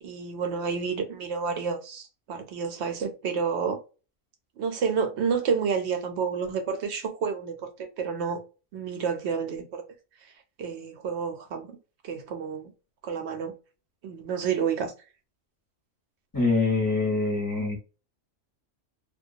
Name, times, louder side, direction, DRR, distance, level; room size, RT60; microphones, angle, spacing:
voice 1, 0.0-3.8 4.6-8.4 8.7-9.8 10.6-11.8 12.0-12.7 13.0-13.5 14.0-14.9, right 6 dB, 65° right, 0.7 m, -29 dB
voice 2, 16.3-17.8, left 3 dB, 20° left, 0.7 m, -24 dB
2.2 x 2.2 x 2.6 m
omnidirectional pair, 1.4 m